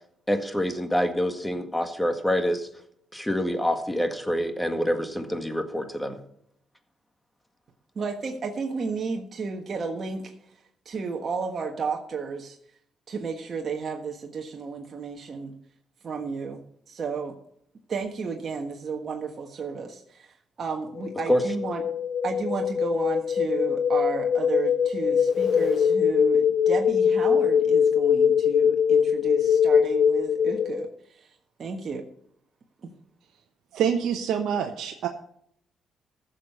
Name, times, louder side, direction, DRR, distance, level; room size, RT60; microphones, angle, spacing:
voice 1, 0.3-2.7 3.1-6.2 21.3-21.4, equal, 5° left, 7 dB, 1.8 m, -26 dB
voice 2, 7.9-10.3 10.8-12.6 13.1-15.5 16.0-16.6 16.9-17.3 17.9-21.8 22.2-31.3 31.6-32.0, right 4 dB, 45° right, 2 dB, 1.4 m, -32 dB
sound 1, 21.0-30.9, left 7 dB, 55° left, 0.5 m, -22 dB
voice 3, 33.7-35.1, right 8 dB, 80° right, 3 dB, 1.1 m, -26 dB
15.0 x 6.7 x 5.6 m, 0.70 s
cardioid pair, 90°, 0 cm